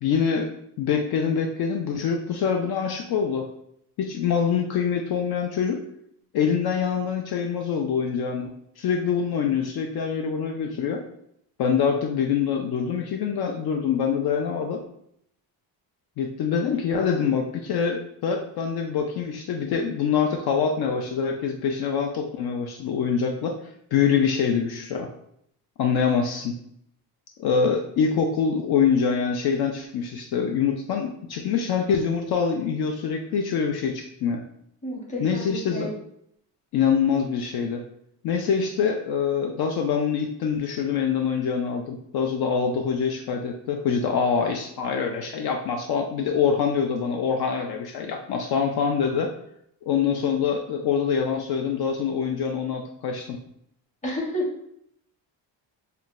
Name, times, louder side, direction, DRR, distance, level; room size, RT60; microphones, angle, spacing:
voice 1, 0.0-3.5 4.0-5.8 6.3-11.0 11.6-14.8 16.2-23.6 23.9-25.1 25.8-26.6 27.4-34.4 35.2-35.9 36.7-37.8 38.2-49.3 49.9-53.4, left 6 dB, 65° left, 3 dB, 0.5 m, -25 dB
voice 2, 34.8-35.9 54.0-54.5, left 1 dB, 15° left, -2 dB, 0.9 m, -30 dB
5.7 x 2.2 x 2.4 m, 0.71 s
cardioid pair, 150°, 42 cm